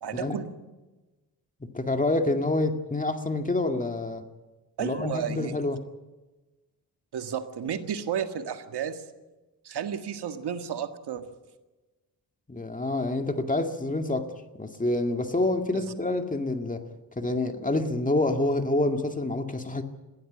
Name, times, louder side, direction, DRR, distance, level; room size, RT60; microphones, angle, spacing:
voice 1, 0.0-0.5 4.8-5.6 7.1-9.1 9.6-11.3 15.7-15.8, right 8 dB, 75° right, 7 dB, 1.8 m, -32 dB
voice 2, 1.6-4.2 4.8-5.8 12.5-14.3 14.6-16.8 17.2-19.8, left 2 dB, 20° left, 6 dB, 2.1 m, -27 dB
21.0 x 15.5 x 8.8 m, 1.2 s
cardioid pair, 90°, 40 cm